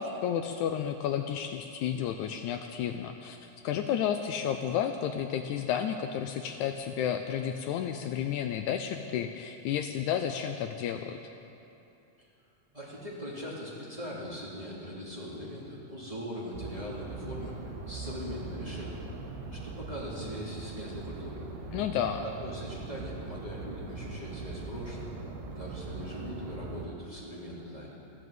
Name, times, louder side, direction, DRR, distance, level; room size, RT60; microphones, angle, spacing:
voice 1, 0.0-11.2 21.7-22.2, left 9 dB, 80° left, 7 dB, 1.9 m, -31 dB
voice 2, 12.7-19.1 19.5-21.4 22.2-25.1 25.5-28.0, equal, 10° right, -6 dB, 2.6 m, -41 dB
sound 1, 16.5-26.9, right 3 dB, 85° right, 3.1 m, -41 dB
14.5 x 12.5 x 8.0 m, 2.9 s
omnidirectional pair, 3.6 m